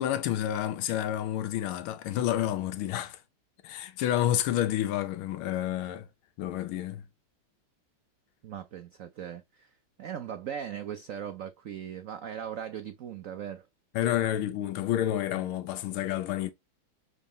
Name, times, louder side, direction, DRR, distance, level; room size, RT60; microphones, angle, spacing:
voice 1, 0.0-3.2 3.6-6.1 6.4-7.0 13.9-16.5, left 12 dB, 85° left, 1.6 m, -29 dB
voice 2, 8.4-13.7 15.3-15.5, right 9 dB, 85° right, 0.7 m, -39 dB
7.2 x 3.9 x 3.8 m
omnidirectional pair, 2.3 m